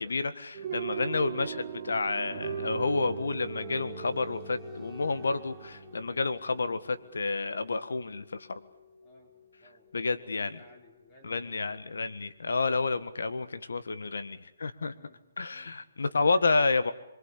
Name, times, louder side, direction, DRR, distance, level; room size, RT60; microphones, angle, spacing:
voice 1, 0.0-8.6 9.9-10.6 11.2-14.9 15.4-16.9, left 3 dB, 85° left, 12 dB, 1.7 m, -30 dB
sound 1, 0.5-6.8, right 7 dB, 25° right, 2.7 m, -39 dB
sound 2, 2.4-13.2, left 3 dB, 5° right, 1.5 m, -51 dB
voice 2, 9.0-9.3 9.6-11.8 14.9-15.2 15.5-16.4, left 2 dB, 20° left, 2 dB, 4.4 m, -58 dB
26.0 x 23.0 x 8.5 m, 0.88 s
hypercardioid pair, 170°, 0 cm